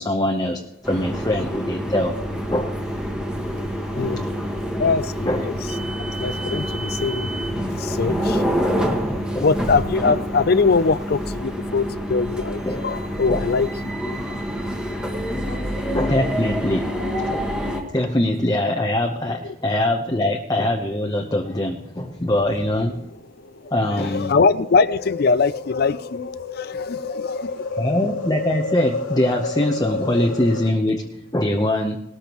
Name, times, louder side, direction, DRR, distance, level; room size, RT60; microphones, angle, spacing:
voice 1, 0.0-2.1 2.5-2.8 5.3-5.5 9.3-9.4 12.6-12.8 13.3-13.4 15.3-15.5 15.9-16.9 17.3-17.5 17.9-23.1 23.7-24.3 27.8-31.1 31.3-32.0, left 1 dB, 20° left, 0.9 m, -22 dB
sound 1, 0.8-17.8, equal, 5° right, 1.6 m, -27 dB
voice 2, 3.9-4.3 4.8-5.6 6.1-14.4 15.0-15.1 15.4-15.9 19.4-19.5 20.2-20.3 23.9-27.9, left 4 dB, 50° left, 0.5 m, -23 dB
sound 2, 21.6-30.7, left 3 dB, 85° left, 1.1 m, -31 dB
19.5 x 13.5 x 3.1 m
head